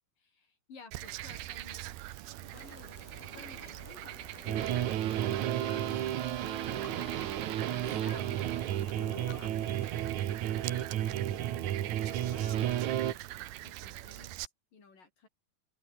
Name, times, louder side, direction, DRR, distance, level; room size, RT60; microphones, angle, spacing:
voice 1, 0.2-1.8 2.4-2.9 3.4-7.4 7.7-8.4 9.1-9.5 10.7-13.2 13.6-15.3, left 4 dB, 60° left, 7.5 m, -55 dB
Frog, 0.9-14.5, right 16 dB, 85° right, 3.0 m, -44 dB
sound 1, 2.6-9.9, left 4 dB, 75° left, 8.7 m, -52 dB
sound 2, 4.5-13.1, right 12 dB, 60° right, 2.3 m, -32 dB
open air
omnidirectional pair, 4.5 m